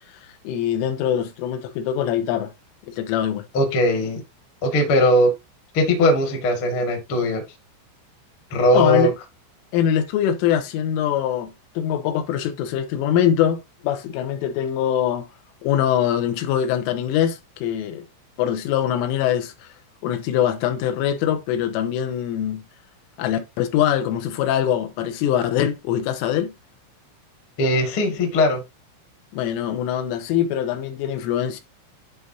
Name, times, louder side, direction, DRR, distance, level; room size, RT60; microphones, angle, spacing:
voice 1, 0.5-2.5 2.9-3.4 8.7-9.1 9.7-15.3 15.6-18.1 18.4-19.7 20.0-22.6 23.2-26.5 29.3-31.6, left 10 dB, 85° left, 3.5 m, -23 dB
voice 2, 3.5-4.2 4.6-5.3 5.7-7.4 8.5-9.1 27.6-28.6, left 1 dB, 50° left, 1.5 m, -19 dB
11.0 x 3.9 x 2.7 m
omnidirectional pair, 5.6 m